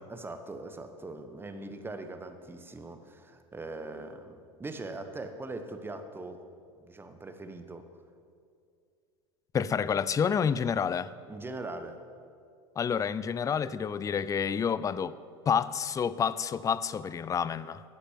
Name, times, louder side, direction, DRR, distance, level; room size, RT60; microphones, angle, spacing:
voice 1, 0.1-6.4 6.8-7.9 11.3-12.0, right 2 dB, 15° right, 7 dB, 1.3 m, -41 dB
voice 2, 9.5-11.1 12.8-15.1 15.5-17.8, left 7 dB, 20° left, 17 dB, 0.5 m, -29 dB
11.5 x 8.2 x 8.3 m, 2.3 s
hypercardioid pair, 85°, 15 cm